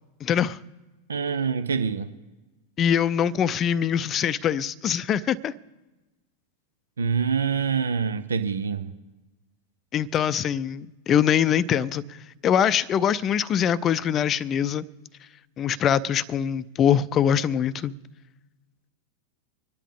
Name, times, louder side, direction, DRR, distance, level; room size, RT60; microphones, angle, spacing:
voice 1, 0.2-0.6 2.8-5.5 9.9-12.2 12.4-14.9 15.6-17.9, left 9 dB, 30° left, 0.5 m, -23 dB
voice 2, 1.1-2.1 7.0-8.9, right 6 dB, 70° right, 0.7 m, -25 dB
25.5 x 10.0 x 3.7 m
figure-of-eight pair, 90°, 0 cm